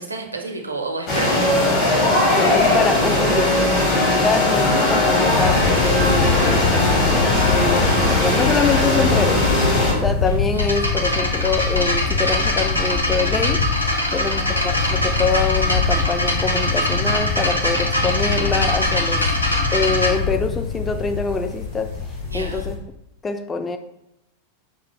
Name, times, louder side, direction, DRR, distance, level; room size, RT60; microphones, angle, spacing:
voice 1, 0.0-2.4 14.1-14.4 22.3-22.7, right 3 dB, 80° right, 0.5 m, -31 dB
sound 1, 1.1-9.9, left 1 dB, 45° left, 1.2 m, -18 dB
voice 2, 2.4-3.9 4.2-9.5 10.0-13.6 14.1-19.3 19.7-21.9 22.3-22.8 23.2-23.8, left 4 dB, 15° left, 0.3 m, -24 dB
sound 2, 5.3-22.8, left 5 dB, 65° left, 1.0 m, -24 dB
sound 3, 10.5-20.1, equal, 85° left, 0.5 m, -23 dB
5.2 x 2.0 x 3.2 m
figure-of-eight pair, 90°, 0 cm